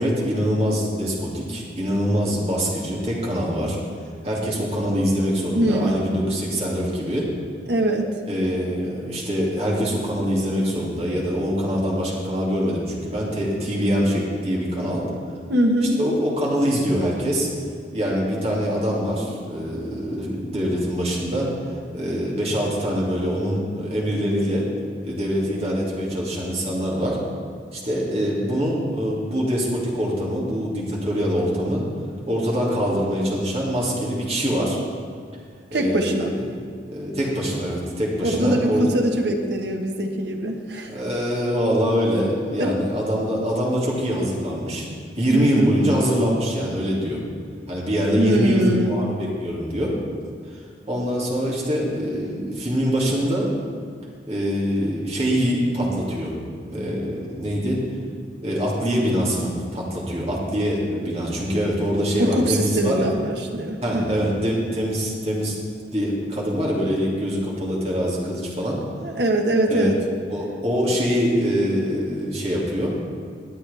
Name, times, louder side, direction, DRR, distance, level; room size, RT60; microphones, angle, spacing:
voice 1, 0.0-3.8 4.2-7.3 8.3-15.1 16.0-17.5 17.9-21.5 21.9-24.7 25.0-27.2 27.7-31.8 32.3-34.8 35.7-36.6 36.9-38.9 40.9-44.9 45.2-47.2 47.7-49.9 50.9-53.5 54.3-56.3 56.6-57.8 58.4-63.1 63.8-65.5 65.9-68.8 69.7-69.9 70.3-72.9, equal, 35° right, -4 dB, 2.5 m, -24 dB
voice 2, 5.5-6.2 7.7-8.1 15.5-16.0 35.7-36.4 38.2-40.9 42.6-42.7 45.3-45.8 48.1-48.9 62.2-64.3 69.0-70.0, right 1 dB, 70° right, 2 dB, 1.4 m, -22 dB
20.5 x 8.0 x 3.5 m, 2.1 s
head